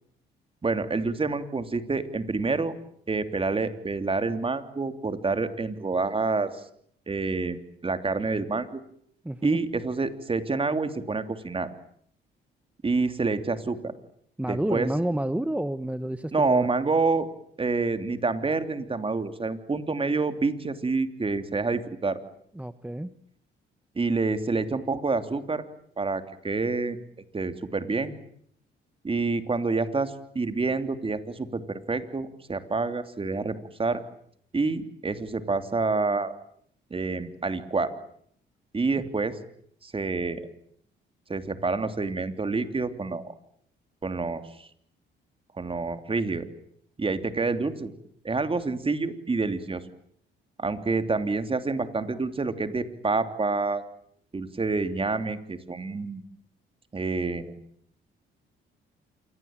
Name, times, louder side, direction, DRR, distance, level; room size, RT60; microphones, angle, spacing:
voice 1, 0.6-2.7 3.1-6.5 7.1-8.8 9.4-11.7 12.8-13.9 14.5-14.9 16.3-17.3 17.6-22.2 23.9-25.6 26.0-27.0 27.3-28.1 29.0-34.0 34.5-36.3 36.9-37.9 38.7-39.3 39.8-40.5 41.3-43.3 44.0-44.7 45.6-46.5 47.0-47.9 48.2-49.8 50.6-53.8 54.3-56.2 56.9-57.5, right 3 dB, 25° right, 9 dB, 3.1 m, -27 dB
voice 2, 9.2-9.6 14.4-16.7 22.5-23.1, right 1 dB, 5° right, 12 dB, 1.1 m, -29 dB
27.5 x 21.5 x 9.0 m, 0.67 s
cardioid pair, 90°, 20 cm